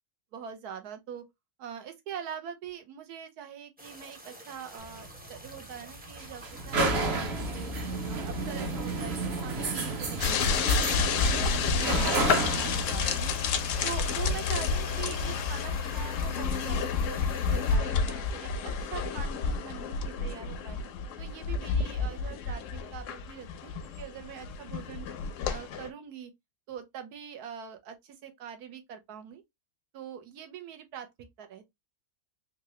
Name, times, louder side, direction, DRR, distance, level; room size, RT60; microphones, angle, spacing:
voice 1, 0.3-1.3 1.6-7.7 8.1-11.5 11.9-13.4 13.8-20.8 21.2-23.7 24.0-25.1 25.5-26.3 26.7-29.4 29.9-31.1 31.4-31.6, right 8 dB, 85° right, 1.3 m, -43 dB
sound 1, 3.8-17.8, right 1 dB, 10° right, 0.5 m, -49 dB
sound 2, 4.8-15.4, right 3 dB, 50° right, 1.0 m, -32 dB
sound 3, 10.2-25.9, left 5 dB, 70° left, 0.8 m, -30 dB
3.8 x 2.4 x 3.0 m
omnidirectional pair, 1.6 m